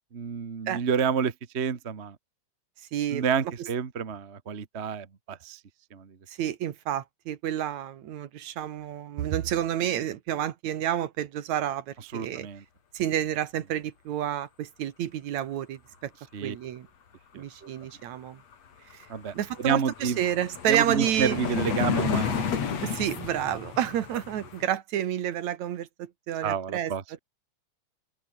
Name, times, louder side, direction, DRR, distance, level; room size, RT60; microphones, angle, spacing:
voice 1, 0.0-2.2 3.1-5.6 5.9-6.1 12.1-12.6 16.3-16.6 17.3-17.7 19.1-20.2 20.7-22.4 22.7-22.8 26.4-27.0, right 6 dB, 35° right, 1.1 m, -29 dB
voice 2, 2.9-3.2 3.6-3.7 6.3-12.5 12.9-16.1 16.4-16.9 17.3-18.4 18.9-19.1 19.3-21.4 22.8-26.9, right 11 dB, 70° right, 2.6 m, -30 dB
sound 1, 18.5-18.6 18.9-24.6, left 7 dB, 60° left, 3.7 m, -32 dB
omnidirectional pair, 3.5 m